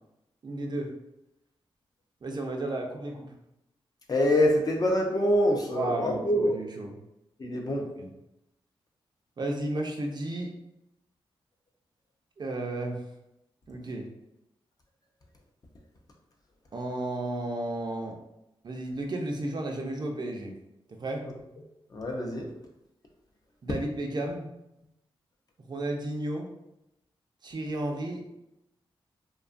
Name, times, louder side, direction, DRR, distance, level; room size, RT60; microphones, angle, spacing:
voice 1, 0.4-0.9 2.2-3.3 5.7-6.9 8.0-8.1 9.4-10.5 12.4-13.0 13.7-14.1 16.7-18.1 18.6-20.5 21.0-21.3 23.6-24.5 25.6-26.5 27.4-28.3, right 1 dB, 45° right, 2 dB, 0.5 m, -33 dB
voice 2, 4.1-6.6 7.4-7.9 21.9-22.5, left 1 dB, 40° left, 0 dB, 0.6 m, -25 dB
2.7 x 2.2 x 2.5 m, 0.87 s
cardioid pair, 75°, 10 cm